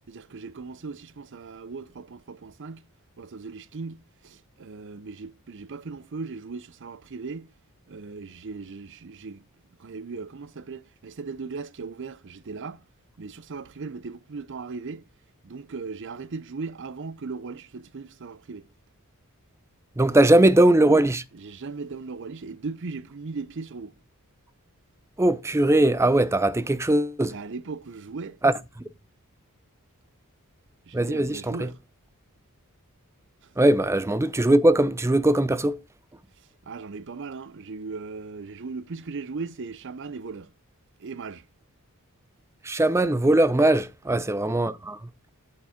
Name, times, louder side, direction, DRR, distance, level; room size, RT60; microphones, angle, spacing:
voice 1, 0.1-2.9 3.2-7.5 7.9-9.4 9.8-12.8 13.2-15.1 15.4-18.7 21.3-24.0 27.2-28.4 30.9-31.8 36.7-40.5 41.0-41.5 44.1-44.3, right 4 dB, 55° right, 0.6 m, -38 dB
voice 2, 20.0-21.2 25.2-27.3 28.4-28.5 30.9-31.7 33.6-35.8 42.6-45.0, right 1 dB, 10° right, 0.5 m, -20 dB
8.7 x 8.4 x 3.7 m
head